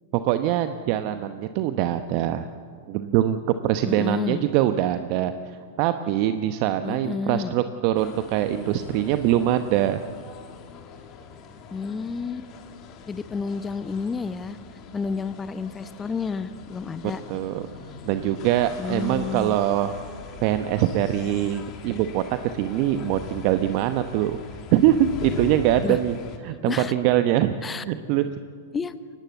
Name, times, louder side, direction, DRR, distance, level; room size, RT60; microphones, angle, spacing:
voice 1, 0.2-2.5 2.9-3.4 3.6-5.3 5.8-10.0 17.3-17.7 18.1-19.9 20.4-24.4 24.7-26.2 26.4-27.5 27.9-28.2, right 12 dB, 45° right, 9 dB, 0.9 m, -23 dB
voice 2, 3.8-4.4 6.8-7.5 11.7-12.5 13.1-14.6 14.9-17.2 18.8-19.6 25.8-26.0 26.5-26.9 27.6-27.8 28.7-28.9, left 5 dB, 15° left, 13 dB, 0.9 m, -30 dB
sound 1, 7.9-26.4, left 6 dB, 35° left, 2.5 m, -41 dB
23.5 x 18.5 x 8.3 m, 2.1 s
figure-of-eight pair, 100°, 0 cm